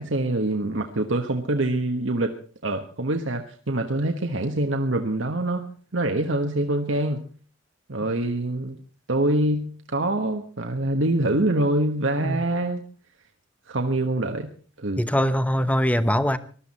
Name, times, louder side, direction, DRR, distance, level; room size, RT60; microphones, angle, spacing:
voice 1, 0.0-7.3 7.9-8.8 9.1-12.8 13.7-14.5 14.8-15.0, right 1 dB, 70° right, 1.4 m, -25 dB
voice 2, 15.0-16.4, equal, 5° left, 0.9 m, -22 dB
20.0 x 13.0 x 4.2 m
head